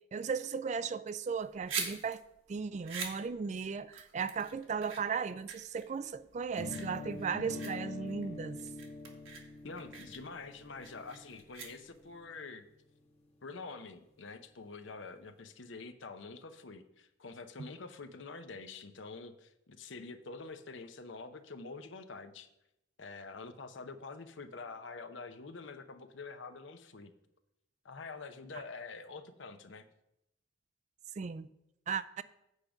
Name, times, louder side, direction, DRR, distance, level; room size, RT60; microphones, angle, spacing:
voice 1, 0.1-2.2 2.5-8.6 17.6-17.7 31.2-31.5 31.9-32.2, right 5 dB, 35° right, 0.3 m, -36 dB
sound 1, 1.3-12.2, right 5 dB, 85° right, 1.6 m, -44 dB
sound 2, 6.6-12.5, left 3 dB, 35° left, 1.4 m, -45 dB
voice 2, 9.6-12.7 13.4-22.5 23.0-27.1 27.8-29.8, left 4 dB, 70° left, 0.8 m, -46 dB
8.2 x 5.1 x 7.0 m
head